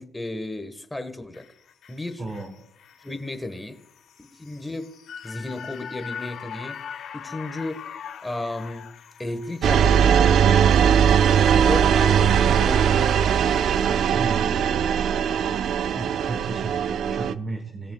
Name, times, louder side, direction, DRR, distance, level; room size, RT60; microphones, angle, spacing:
voice 1, 0.0-1.5 1.9-2.2 3.0-3.8 4.3-4.9 5.2-6.8 7.1-7.9 8.2-8.9 9.2-10.6 11.5-13.3, left 2 dB, 10° left, 8 dB, 1.4 m, -33 dB
sound 1, 1.3-13.7 14.0-14.1, left 8 dB, 65° left, 1.1 m, -42 dB
voice 2, 2.2-2.6 14.1-14.6 15.9-17.9, right 3 dB, 30° right, 3 dB, 1.7 m, -34 dB
sound 2, 9.6-17.3, right 8 dB, 65° right, 0.5 m, -19 dB
20.5 x 6.9 x 2.3 m, 0.78 s
cardioid pair, 85°, 0 cm